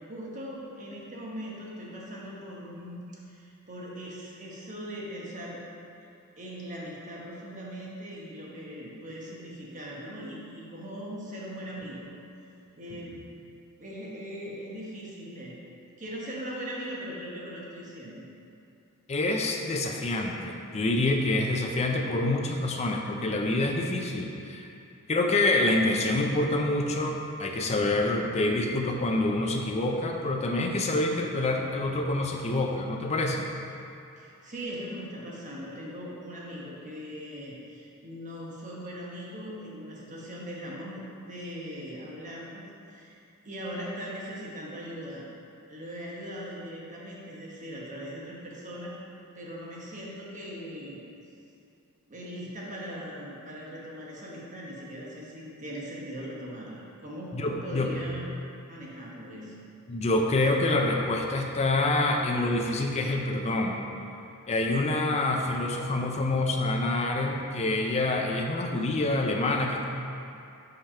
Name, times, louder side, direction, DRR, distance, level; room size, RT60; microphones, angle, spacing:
voice 1, 0.1-5.6 6.4-12.1 12.8-13.1 13.8-15.6 16.0-18.2 34.1-42.6 42.9-43.2 43.4-45.2 45.7-48.9 49.4-51.0 52.1-58.3 58.7-59.5, equal, 35° right, -4 dB, 1.1 m, -40 dB
voice 2, 19.1-24.7 25.1-33.5 57.3-57.9 59.9-63.8 64.5-69.8, left 2 dB, 30° left, 1 dB, 0.5 m, -27 dB
5.7 x 3.4 x 5.5 m, 2.6 s
head